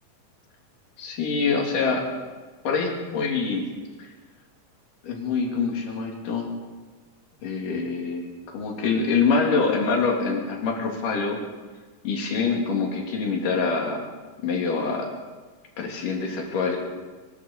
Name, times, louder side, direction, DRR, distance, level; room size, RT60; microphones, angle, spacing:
voice 1, 1.0-2.1 2.6-3.7 5.0-6.5 7.4-11.4 12.0-14.1 14.4-15.1 15.8-16.8, left 4 dB, 80° left, 1 dB, 3.8 m, -25 dB
23.5 x 13.5 x 4.2 m, 1.3 s
omnidirectional pair, 3.7 m